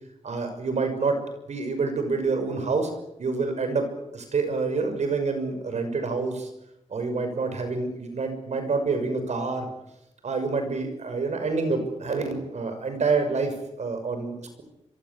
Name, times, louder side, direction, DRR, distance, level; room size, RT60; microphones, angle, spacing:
voice 1, 0.2-1.2 1.5-2.9 3.2-3.9 4.1-6.5 6.9-9.7 10.2-14.6, right 4 dB, 80° right, 8 dB, 6.1 m, -27 dB
26.0 x 23.5 x 8.5 m, 0.86 s
wide cardioid pair, 135°, 12 cm